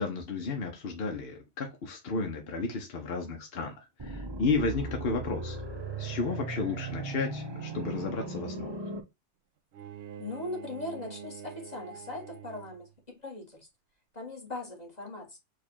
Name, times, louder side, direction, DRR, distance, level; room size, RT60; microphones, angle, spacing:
voice 1, 0.0-5.6 6.0-8.9, left 4 dB, 55° left, 1.1 m, -33 dB
lil boost, 4.0-9.0, right 2 dB, 25° right, 0.7 m, -37 dB
Bowed string instrument, 9.7-13.0, right 8 dB, 75° right, 0.9 m, -46 dB
voice 2, 10.2-12.9 13.2-13.7 14.1-15.4, left 2 dB, 35° left, 1.6 m, -39 dB
4.8 x 2.4 x 4.3 m
omnidirectional pair, 1.2 m